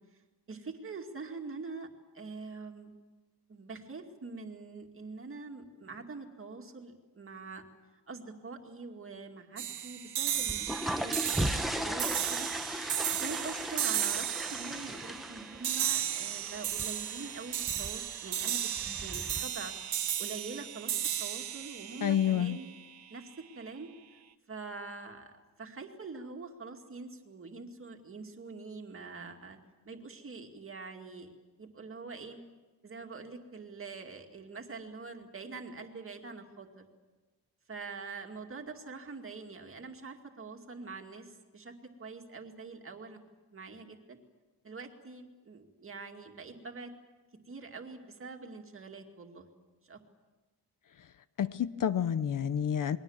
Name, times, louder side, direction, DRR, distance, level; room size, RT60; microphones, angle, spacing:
voice 1, 0.5-1.9 2.1-2.9 3.5-7.6 8.1-12.8 13.2-18.7 19.0-19.7 20.2-22.8 23.1-23.9 24.5-25.3 25.6-29.6 29.9-31.3 31.6-32.4 32.8-36.9 37.7-43.2 43.5-44.2 44.6-46.9 47.5-49.5 49.8-50.0, right 4 dB, 35° right, 2.3 m, -44 dB
sound 1, 9.6-23.0, right 10 dB, 80° right, 1.2 m, -35 dB
sound 2, 10.4-19.4, equal, ahead, 0.8 m, -38 dB
voice 2, 22.0-22.6 51.4-53.0, left 9 dB, 55° left, 0.7 m, -29 dB
29.0 x 22.0 x 7.2 m
wide cardioid pair, 180°, 39 cm